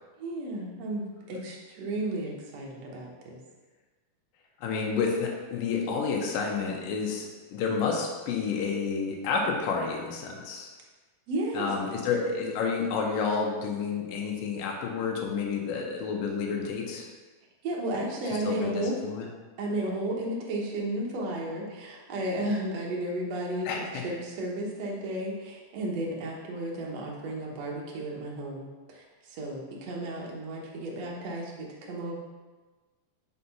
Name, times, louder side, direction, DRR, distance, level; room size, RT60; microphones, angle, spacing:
voice 1, 0.2-3.4 11.3-11.7 17.6-18.9 19.6-32.2, right 1 dB, 65° right, -2 dB, 1.8 m, -33 dB
voice 2, 4.6-10.7 11.5-17.1 18.4-19.3 23.7-24.0, left 5 dB, 75° left, 0 dB, 2.5 m, -30 dB
5.8 x 4.1 x 5.5 m, 1.3 s
omnidirectional pair, 4.2 m